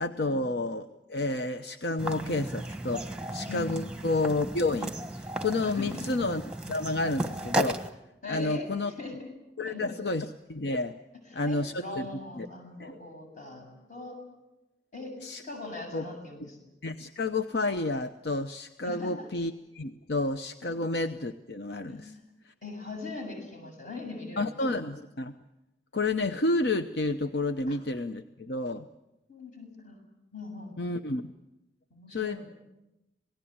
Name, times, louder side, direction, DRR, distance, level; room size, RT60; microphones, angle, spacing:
voice 1, 0.0-6.4 6.7-7.8 8.3-8.9 9.6-10.9 11.3-12.1 12.4-12.5 12.8-12.9 15.2-15.4 15.9-16.0 16.8-22.1 22.4-22.5 24.4-25.4 25.9-28.9 30.8-31.3 32.1-32.4, left 2 dB, 75° left, 8 dB, 0.9 m, -30 dB
sound 1, 2.0-7.9, right 1 dB, 5° right, 1.2 m, -34 dB
voice 2, 5.6-6.0 8.2-9.3 9.6-10.1 11.3-14.2 14.9-16.6 18.8-19.3 21.9-22.1 22.6-24.9 27.7-27.8 29.3-30.0 30.3-31.0 31.9-32.5, left 3 dB, 45° left, 3 dB, 7.4 m, -41 dB
27.5 x 18.5 x 8.8 m, 0.96 s
head